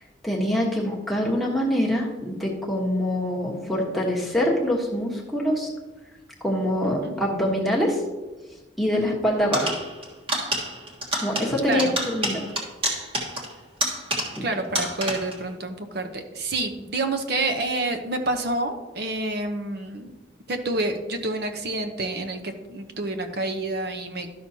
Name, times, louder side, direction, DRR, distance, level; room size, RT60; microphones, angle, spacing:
voice 1, 0.2-5.7 6.4-8.0 8.8-9.7 11.2-12.4 14.4-14.5, equal, ahead, -3 dB, 1.2 m, -24 dB
sound 1, 9.5-14.5 14.7-15.4, right 1 dB, 30° right, 1.4 m, -29 dB
voice 2, 14.4-20.2 20.5-24.3, right 2 dB, 55° right, 6 dB, 0.8 m, -28 dB
12.0 x 6.1 x 2.8 m, 1.2 s
head